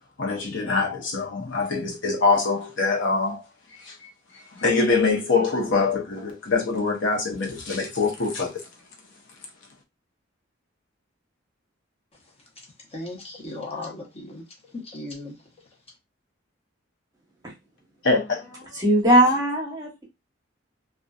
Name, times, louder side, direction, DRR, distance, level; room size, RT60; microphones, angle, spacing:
voice 1, 0.2-3.4 3.7-4.1 4.5-8.6 18.0-18.8, left 4 dB, 65° left, 0.8 m, -24 dB
voice 2, 12.5-15.4, left 2 dB, 30° left, 0.7 m, -37 dB
voice 3, 18.7-20.0, right 1 dB, 20° right, 1.0 m, -19 dB
2.6 x 2.3 x 2.3 m
head